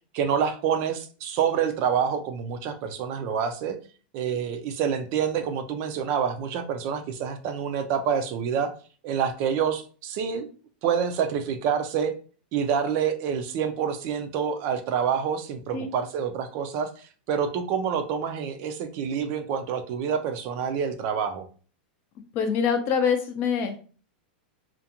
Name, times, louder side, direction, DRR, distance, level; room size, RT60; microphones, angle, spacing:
voice 1, 0.1-3.8 4.1-8.7 9.0-10.5 10.8-12.1 12.5-21.4, right 7 dB, 45° right, 8 dB, 0.4 m, -27 dB
voice 2, 22.3-23.8, left 6 dB, 40° left, 6 dB, 0.5 m, -25 dB
2.4 x 2.1 x 2.8 m, 0.39 s
supercardioid pair, 145°, 5 cm